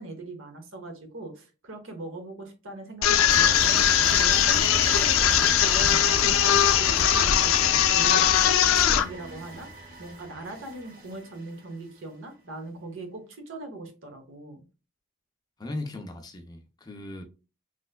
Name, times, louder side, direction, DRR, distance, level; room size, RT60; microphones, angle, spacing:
voice 1, 0.0-3.8 4.1-7.6 7.9-14.6, right 2 dB, 65° right, 0.9 m, -40 dB
sound 1, 3.0-9.0, left 9 dB, 80° left, 0.4 m, -20 dB
sound 2, 3.3-11.7, right 2 dB, 45° right, 1.3 m, -37 dB
voice 2, 15.6-17.2, left 2 dB, 20° left, 0.4 m, -37 dB
3.2 x 3.1 x 2.2 m
head